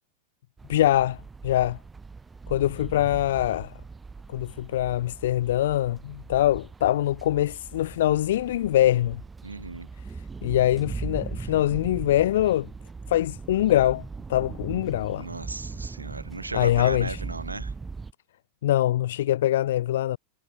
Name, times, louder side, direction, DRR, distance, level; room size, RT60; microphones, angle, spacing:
sound 1, 0.6-18.1, right 4 dB, 15° right, 4.4 m, -39 dB
voice 1, 0.7-1.8 2.5-3.7 4.3-9.2 10.4-12.7 13.1-14.0 14.3-15.3 16.5-17.2 18.6-20.2, left 13 dB, 60° left, 0.4 m, -23 dB
voice 2, 9.4-9.9 11.4-11.5 15.2-17.7, right 3 dB, 80° right, 1.4 m, -36 dB
figure-of-eight pair, 90°, 0 cm